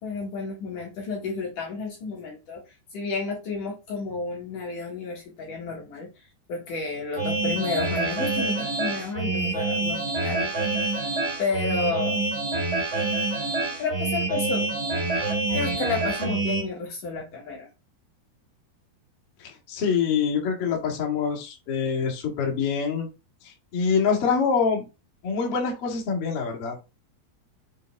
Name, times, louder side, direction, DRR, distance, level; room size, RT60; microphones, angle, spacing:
voice 1, 0.0-2.6 2.9-6.1 6.5-10.5 11.4-12.2 13.8-14.7 15.5-17.7, left 4 dB, 60° left, -2 dB, 2.9 m, -31 dB
sound 1, 7.2-16.6, right 3 dB, 20° right, 2.2 m, -27 dB
voice 2, 19.4-23.1 23.4-24.8 25.2-26.8, left 6 dB, 45° left, 0 dB, 2.3 m, -25 dB
7.6 x 4.0 x 3.6 m, 0.27 s
omnidirectional pair, 4.8 m